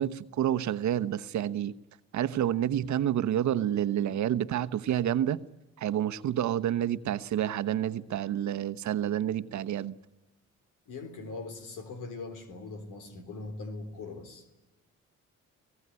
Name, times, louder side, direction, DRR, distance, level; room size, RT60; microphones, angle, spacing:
voice 1, 0.0-1.7 2.1-5.4 5.8-10.0, right 11 dB, 70° right, 1.0 m, -29 dB
voice 2, 10.9-14.5, left 3 dB, 85° left, 3.8 m, -41 dB
25.5 x 18.0 x 9.7 m
cardioid pair, 90°, 30 cm